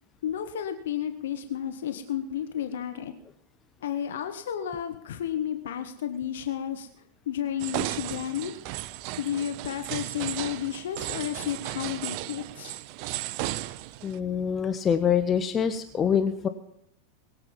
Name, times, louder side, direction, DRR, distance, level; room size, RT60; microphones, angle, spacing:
voice 1, 0.2-3.1 3.8-6.9 7.3-8.5 9.2-12.8, left 10 dB, 60° left, 8 dB, 1.1 m, -32 dB
sound 1, 7.6-14.2, right 16 dB, 45° right, 0.5 m, -35 dB
voice 2, 14.0-16.5, left 7 dB, 25° left, 9 dB, 0.9 m, -25 dB
21.5 x 8.0 x 5.5 m, 0.75 s
figure-of-eight pair, 90°, 0 cm